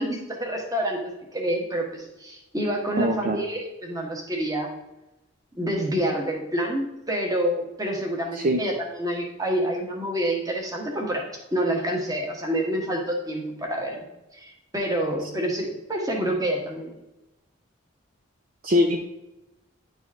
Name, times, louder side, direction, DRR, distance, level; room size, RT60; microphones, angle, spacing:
voice 1, 0.0-4.7 5.5-11.3 11.5-14.1 14.3-16.9, right 1 dB, 15° right, 1 dB, 1.3 m, -28 dB
voice 2, 3.0-3.4 8.3-8.6 18.6-19.0, left 1 dB, 45° right, 3 dB, 0.5 m, -22 dB
10.5 x 4.1 x 3.6 m, 0.95 s
head